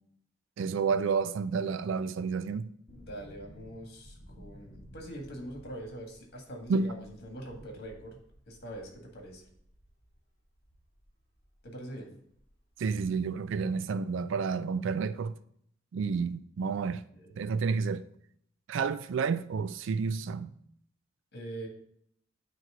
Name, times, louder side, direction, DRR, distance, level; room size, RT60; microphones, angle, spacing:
voice 1, 0.6-2.7 6.7-6.9 12.8-15.3 15.9-17.0 17.4-18.1 18.7-20.5, right 5 dB, 70° right, 0.3 m, -30 dB
voice 2, 2.9-8.2 8.5-9.5 11.6-12.1 17.1-17.4 21.3-21.7, right 1 dB, 55° left, 1.8 m, -43 dB
sound 1, 2.9-11.7 12.0-12.1 12.3-13.4 13.6-13.7, equal, 40° left, 3.1 m, -55 dB
9.1 x 3.1 x 4.9 m
head